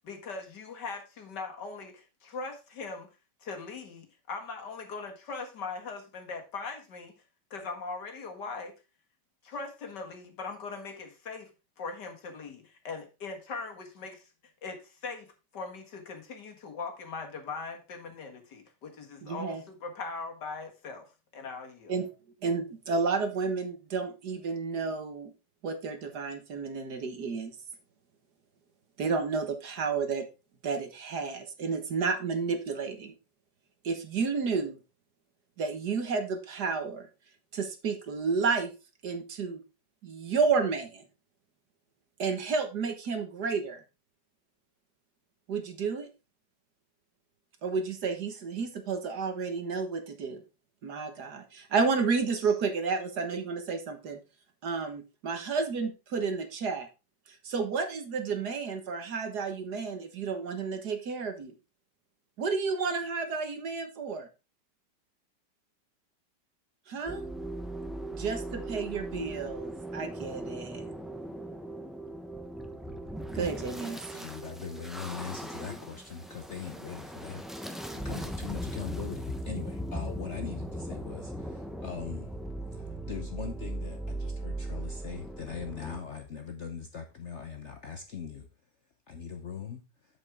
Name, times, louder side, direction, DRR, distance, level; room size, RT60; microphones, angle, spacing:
voice 1, 0.0-3.1 3.4-7.1 7.5-8.7 9.4-11.5 11.8-14.3 14.6-15.3 15.5-22.0, left 4 dB, 70° left, 2.4 m, -40 dB
voice 2, 19.2-19.6 21.9-22.1 22.4-25.3 25.6-27.5 29.0-30.3 30.6-33.1 33.8-34.8 35.6-37.1 37.5-38.7 39.0-39.6 40.0-41.0 42.2-43.8 45.5-46.1 47.6-50.4 50.8-54.2 54.6-56.9 57.3-61.5 62.4-64.3 66.9-67.2 68.1-70.9 73.3-74.3, right 5 dB, 65° right, 1.9 m, -31 dB
sound 1, 67.1-86.0, right 1 dB, ahead, 0.4 m, -38 dB
voice 3, 74.1-82.3 82.7-88.5 89.1-89.8, left 6 dB, 50° left, 0.9 m, -41 dB
7.9 x 7.6 x 3.6 m
omnidirectional pair, 1.9 m